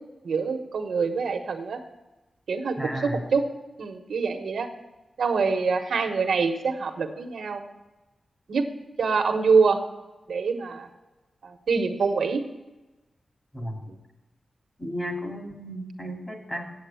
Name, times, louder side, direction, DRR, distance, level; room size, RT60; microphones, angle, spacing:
voice 1, 0.2-1.8 2.5-3.5 3.8-4.7 5.2-7.6 8.5-8.6 9.0-9.8 10.3-10.9 11.4-12.4 13.9-14.0, right 5 dB, 85° right, 6 dB, 1.1 m, -25 dB
voice 2, 2.8-3.2 13.5-13.9 14.8-16.7, equal, 20° left, 2 dB, 2.3 m, -33 dB
8.2 x 7.9 x 6.9 m, 1.1 s
wide cardioid pair, 125°, 0 cm